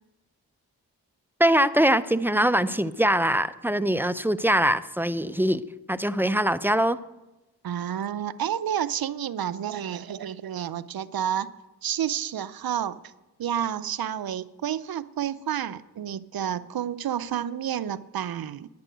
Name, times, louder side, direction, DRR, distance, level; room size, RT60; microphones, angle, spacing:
voice 1, 1.4-5.6 5.9-7.0, right 1 dB, 5° right, 14 dB, 0.5 m, -22 dB
voice 2, 7.6-11.5 11.8-13.0 13.4-18.7, right 9 dB, 65° right, 16 dB, 0.6 m, -30 dB
10.5 x 9.1 x 9.1 m, 1.0 s
cardioid pair, 60°, 38 cm